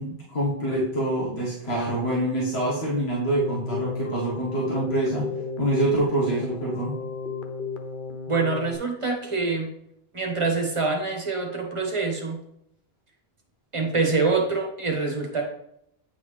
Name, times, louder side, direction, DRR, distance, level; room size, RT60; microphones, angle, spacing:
voice 1, 0.0-5.3 5.6-7.0, right 1 dB, 85° left, -6 dB, 1.7 m, -26 dB
Keyboard (musical), 3.3-8.8, left 4 dB, 60° left, 0.8 m, -34 dB
voice 2, 8.3-9.7 10.1-12.4 13.7-15.4, right 4 dB, 30° right, 1 dB, 1.2 m, -25 dB
8.8 x 3.9 x 3.2 m, 0.75 s
omnidirectional pair, 1.0 m